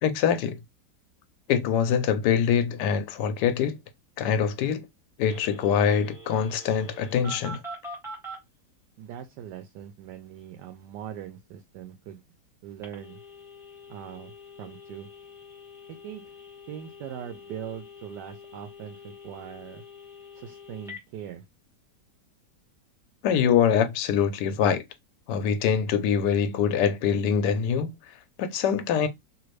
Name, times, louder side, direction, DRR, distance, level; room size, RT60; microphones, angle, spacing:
voice 1, 0.0-0.6 1.5-3.8 4.2-4.9 5.2-7.6 23.2-24.8 25.3-27.9 28.4-29.1, left 7 dB, 75° left, 1.2 m, -24 dB
Telephone, 5.3-8.4 12.8-21.0, left 1 dB, ahead, 1.0 m, -45 dB
voice 2, 9.0-12.2 12.6-13.2 13.9-14.3 14.6-15.1 15.9-16.3 16.7-19.8 20.3-21.4, right 10 dB, 80° right, 1.2 m, -41 dB
3.1 x 2.5 x 3.1 m
omnidirectional pair, 1.9 m